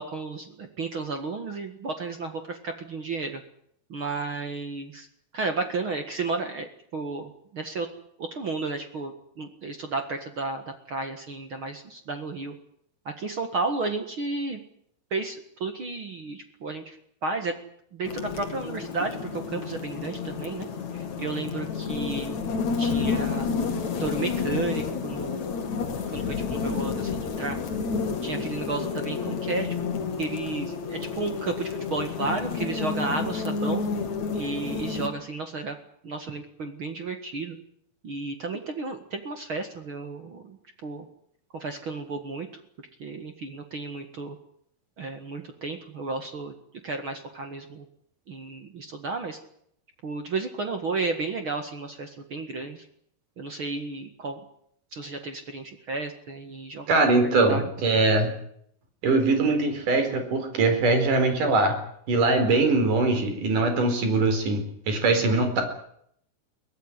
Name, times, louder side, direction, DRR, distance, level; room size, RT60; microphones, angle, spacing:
voice 1, 0.0-3.4 3.9-5.1 5.3-7.9 8.2-12.5 13.2-14.6 15.1-17.6 17.9-20.7 20.9-22.4 22.8-23.5 24.0-25.4 26.1-27.6 28.2-29.7 30.2-33.8 34.3-35.8 36.0-37.6 38.0-41.0 41.5-42.5 43.0-44.4 45.0-46.5 46.8-47.9 48.3-49.4 50.0-52.9 53.4-54.4 54.9-57.1 57.5-57.6, right 3 dB, 65° right, 6 dB, 1.2 m, -33 dB
sound 1, 18.0-35.1, left 5 dB, 45° left, 3.1 m, -30 dB
voice 2, 56.9-58.3 59.0-61.8 62.1-65.6, right 3 dB, 45° right, 7 dB, 5.7 m, -22 dB
23.0 x 17.5 x 10.0 m, 0.69 s
omnidirectional pair, 5.5 m